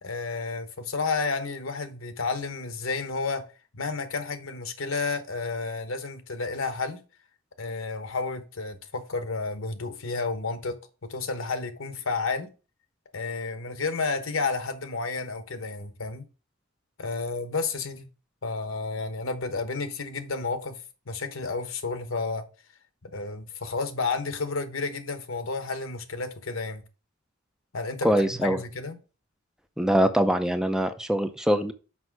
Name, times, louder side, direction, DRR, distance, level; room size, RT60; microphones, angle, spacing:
voice 1, 0.0-3.4 3.7-7.0 7.6-10.8 11.1-12.5 13.1-16.2 17.0-18.1 18.4-20.8 21.1-22.4 23.1-26.8 27.7-29.0, left 4 dB, 70° left, 1.1 m, -31 dB
voice 2, 28.0-28.6 29.8-31.7, equal, 5° right, 0.5 m, -23 dB
6.1 x 5.4 x 4.7 m
head